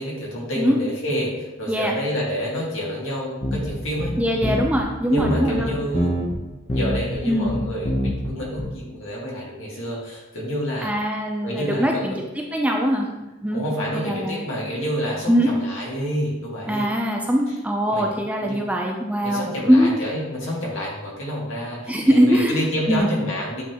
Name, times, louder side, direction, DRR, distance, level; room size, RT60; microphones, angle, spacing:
voice 1, 0.0-4.2 5.1-6.1 6.7-10.9 11.4-12.2 13.5-16.8 17.9-18.1 18.3-18.6 19.2-23.6, equal, 80° left, -4 dB, 1.9 m, -28 dB
sound 1, 3.4-4.9 5.2-6.4 6.7-7.2 7.5-8.3 8.6-8.7, left 1 dB, 25° left, 0.8 m, -24 dB
voice 2, 4.2-5.7 7.2-7.5 10.8-13.1 13.4-13.6 13.9-14.5 15.3-15.5 16.7-19.9 21.9-23.1, equal, 5° right, 0 dB, 0.4 m, -22 dB
8.3 x 3.9 x 2.9 m, 1.1 s
head